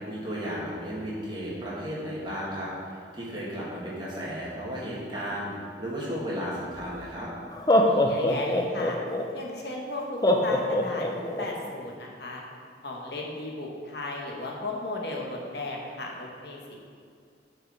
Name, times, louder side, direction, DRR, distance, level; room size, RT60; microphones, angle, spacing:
voice 1, 0.0-7.3, equal, 25° right, -7 dB, 1.7 m, -34 dB
Laughter, 6.8-6.9 7.5-9.2 10.2-11.5, left 1 dB, 20° left, 0.5 m, -23 dB
voice 2, 7.8-9.0 9.3-12.4 12.8-16.8, left 2 dB, 60° left, -1 dB, 1.0 m, -35 dB
6.4 x 4.7 x 6.1 m, 2.2 s
head